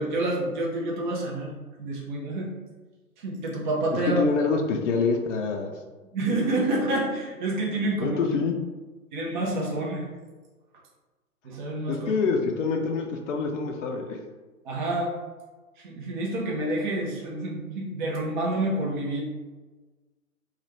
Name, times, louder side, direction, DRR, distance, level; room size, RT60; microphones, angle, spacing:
voice 1, 0.0-1.5 1.8-2.5 3.2-4.6 6.1-8.2 9.1-10.1 11.4-12.1 14.6-15.1 15.8-19.2, right 2 dB, 35° right, -2 dB, 0.7 m, -28 dB
voice 2, 4.1-5.7 8.0-8.6 11.9-14.2, left 4 dB, 55° left, 2 dB, 0.5 m, -26 dB
3.2 x 2.4 x 3.0 m, 1.3 s
figure-of-eight pair, 125°, 44 cm